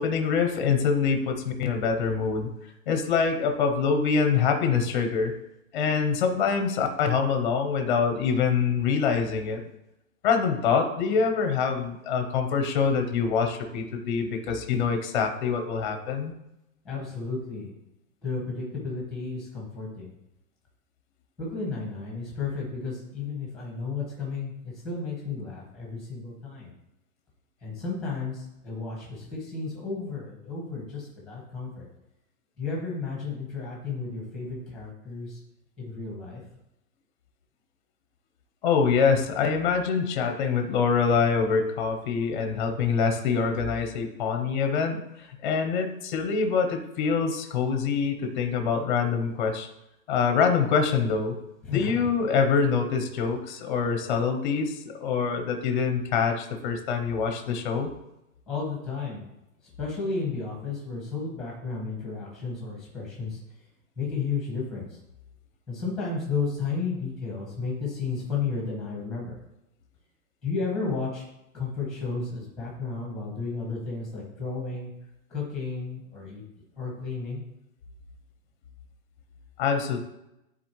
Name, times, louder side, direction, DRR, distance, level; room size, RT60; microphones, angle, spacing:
voice 1, 0.0-2.5 2.9-5.3 5.7-9.6 10.2-16.3 38.6-49.7 50.1-51.4 51.7-57.9 79.6-80.0, left 5 dB, 35° left, 5 dB, 0.8 m, -25 dB
voice 2, 16.8-17.7 18.2-20.1 21.4-26.7 27.6-31.9 32.6-35.4 35.8-36.4 51.6-52.1 58.5-59.2 59.8-63.4 63.9-65.0 65.7-69.4 70.4-71.3 71.5-74.9 75.3-76.4 76.8-77.4, left 4 dB, ahead, -3 dB, 1.4 m, -33 dB
9.8 x 4.2 x 3.1 m, 0.87 s
supercardioid pair, 180°, 42 cm